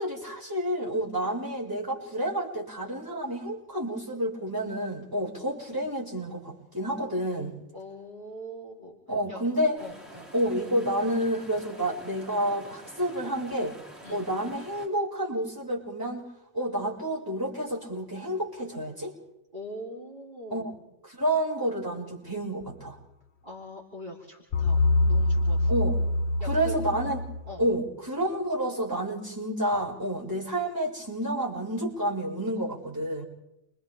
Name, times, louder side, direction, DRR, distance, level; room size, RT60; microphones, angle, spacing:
voice 1, 0.0-7.5 9.1-9.8 10.3-13.7 14.1-16.3 16.5-19.1 20.5-20.6 21.0-23.0 25.7-26.0 26.4-27.2 27.6-33.2, right 1 dB, 15° right, -5 dB, 6.1 m, -29 dB
voice 2, 7.7-9.0 9.3-9.4 9.8-10.3 14.0-14.3 19.5-20.8 23.4-25.7 26.4-26.8 27.0-27.2 27.5-27.6, equal, 45° right, -4 dB, 4.1 m, -42 dB
sound 1, 9.7-14.9, equal, 10° left, 7.1 m, -48 dB
sound 2, 24.5-27.6, left 2 dB, 70° left, 1.2 m, -25 dB
29.5 x 26.0 x 3.6 m, 0.90 s
omnidirectional pair, 1.2 m